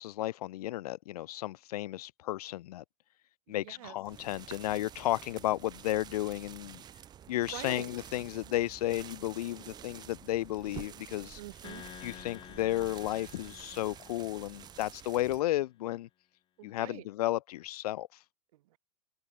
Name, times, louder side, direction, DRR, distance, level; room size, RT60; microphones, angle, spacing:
voice 1, 0.0-2.8 3.5-6.8 7.3-11.4 12.0-16.1 16.6-18.1, left 15 dB, 80° left, 0.6 m, -33 dB
voice 2, 3.5-4.0 7.3-7.9 11.4-11.9 16.6-17.1 18.5-18.8, right 16 dB, 65° right, 2.4 m, -46 dB
sound 1, 4.0-15.4, right 9 dB, 20° right, 2.1 m, -49 dB
sound 2, 11.6-15.1, left 12 dB, 25° left, 2.4 m, -51 dB
open air
supercardioid pair, 155°, 19 cm